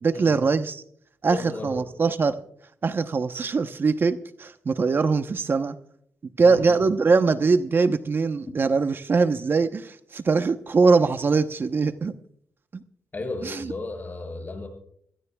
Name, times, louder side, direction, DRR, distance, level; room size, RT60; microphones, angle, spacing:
voice 1, 0.0-0.8 1.2-2.4 2.8-5.7 6.4-12.1 12.7-12.8 13.4-13.7, right 4 dB, 45° right, 9 dB, 0.9 m, -22 dB
voice 2, 1.3-1.9 6.4-6.8 13.1-14.7, left 3 dB, 35° left, 3 dB, 7.8 m, -34 dB
25.5 x 16.5 x 2.4 m, 0.67 s
supercardioid pair, 60°, 5 cm